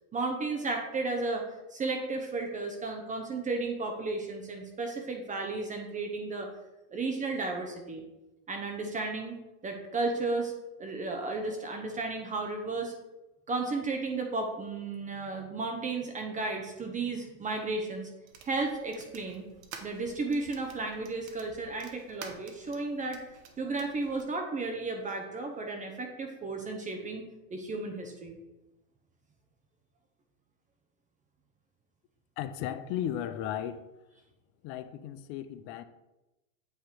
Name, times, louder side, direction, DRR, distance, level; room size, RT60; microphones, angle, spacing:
voice 1, 0.1-1.4 1.7-6.5 6.9-8.0 8.5-9.4 9.6-10.5 10.8-12.9 13.5-18.1 18.4-19.4 19.8-23.2 23.6-28.4, right 3 dB, 20° right, 3 dB, 0.8 m, -33 dB
sound 1, 18.3-24.2, right 6 dB, 80° right, 1.0 m, -51 dB
voice 2, 32.4-33.9 34.6-35.8, left 10 dB, 35° left, 11 dB, 0.4 m, -35 dB
8.2 x 2.9 x 4.9 m, 1.0 s
hypercardioid pair, 115°, 40 cm